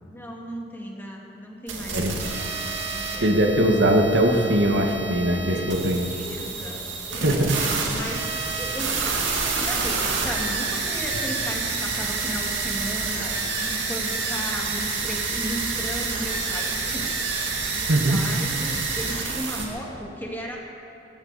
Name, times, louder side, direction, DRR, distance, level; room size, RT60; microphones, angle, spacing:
voice 1, 0.1-3.4 5.5-5.7 6.0-17.1 17.7-20.6, equal, 10° left, -1 dB, 1.8 m, -36 dB
sound 1, 1.7-19.6, right 4 dB, 90° right, 2.3 m, -28 dB
voice 2, 3.2-6.0 7.2-7.6 17.9-18.2, right 1 dB, 70° right, 2 dB, 1.5 m, -21 dB
20.0 x 14.0 x 4.1 m, 2.7 s
head